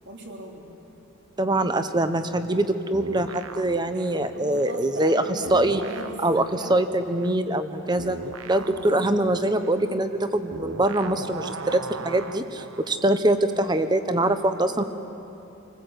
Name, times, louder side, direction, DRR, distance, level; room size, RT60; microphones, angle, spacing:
voice 1, 0.0-0.7 4.3-6.2 6.5-6.7 8.6-9.0 14.7-14.8, right 1 dB, 55° right, 0 dB, 3.7 m, -39 dB
voice 2, 1.4-5.2 5.5-5.8 6.2-6.4 6.7-11.8 12.0-14.8, right 1 dB, 20° right, 9 dB, 1.0 m, -23 dB
sound 1, 2.9-5.2 5.5-13.0, right 3 dB, 80° right, 0.9 m, -39 dB
28.5 x 20.0 x 8.2 m, 2.9 s
head